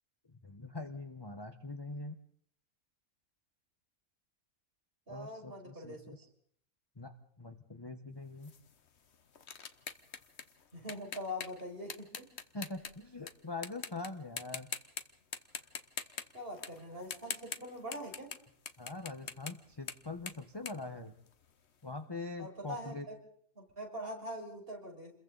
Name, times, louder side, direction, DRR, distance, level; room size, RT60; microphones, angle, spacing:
voice 1, 0.3-2.2 5.1-6.3 7.0-8.5 12.5-14.7 18.8-21.2 21.8-23.1, left 3 dB, 20° left, 6 dB, 1.0 m, -43 dB
voice 2, 5.1-6.0 10.7-12.3 16.3-18.3 22.4-23.1 23.6-25.1, equal, 35° right, 0 dB, 6.1 m, -43 dB
sound 1, 8.4-13.3 13.6-14.1 14.4-15.0 15.3-21.7, left 6 dB, 50° left, 1.3 m, -43 dB
29.5 x 22.0 x 4.1 m, 0.63 s
omnidirectional pair, 1.6 m